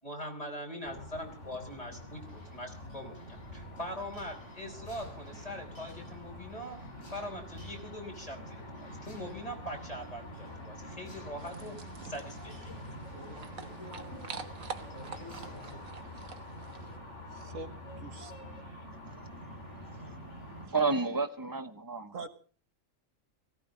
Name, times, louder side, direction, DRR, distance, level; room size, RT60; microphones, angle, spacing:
voice 1, 0.0-6.8 7.1-12.8, equal, 25° left, 5.1 m, -42 dB
sound 1, 0.8-20.7, equal, 60° left, 4.1 m, -46 dB
sound 2, 2.0-15.8, left 1 dB, 90° left, 5.9 m, -56 dB
sound 3, 11.4-17.0, right 5 dB, 90° right, 1.7 m, -46 dB
voice 2, 17.3-18.6 20.6-20.7 22.1-22.3, right 3 dB, 70° right, 1.7 m, -45 dB
voice 3, 19.0-22.2, right 4 dB, 15° right, 1.1 m, -33 dB
18.0 x 17.0 x 3.9 m
omnidirectional pair, 1.4 m